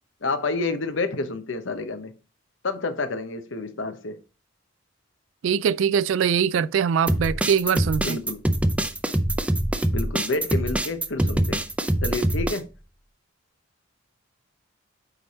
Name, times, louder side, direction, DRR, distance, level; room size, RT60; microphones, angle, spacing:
voice 1, 0.2-2.1 2.6-4.2 8.0-8.4 9.9-11.6 12.0-12.7, left 3 dB, 70° left, 0.9 m, -29 dB
voice 2, 5.4-8.2, right 7 dB, 70° right, 0.3 m, -22 dB
sound 1, 7.1-12.6, right 1 dB, 5° right, 0.4 m, -24 dB
8.7 x 3.4 x 4.2 m
head